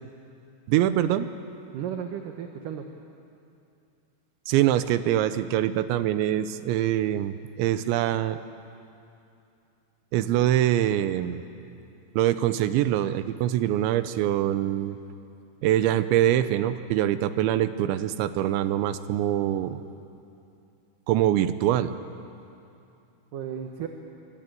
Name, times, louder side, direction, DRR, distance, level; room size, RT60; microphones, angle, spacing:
voice 1, 0.7-1.3 4.5-8.4 10.1-11.4 12.2-15.0 15.6-19.8 21.1-21.9, right 12 dB, 90° right, 12 dB, 3.2 m, -24 dB
voice 2, 1.7-2.9 23.3-23.9, right 9 dB, 65° right, 4 dB, 2.2 m, -34 dB
25.0 x 24.5 x 9.2 m, 2.7 s
omnidirectional pair, 5.2 m